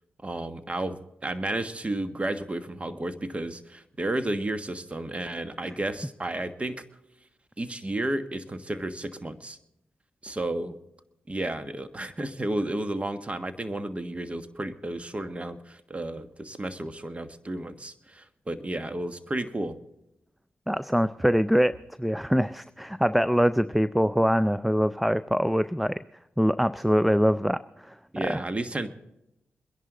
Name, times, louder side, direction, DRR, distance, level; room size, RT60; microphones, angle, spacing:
voice 1, 0.2-6.8 7.6-9.6 10.2-10.8 11.3-19.8 28.1-28.9, right 1 dB, 30° right, 10 dB, 1.5 m, -32 dB
voice 2, 20.7-26.0 26.4-27.6 27.9-28.0 28.3-28.4, equal, ahead, 15 dB, 0.4 m, -23 dB
22.5 x 11.0 x 3.9 m, 0.86 s
supercardioid pair, 45°, 4 cm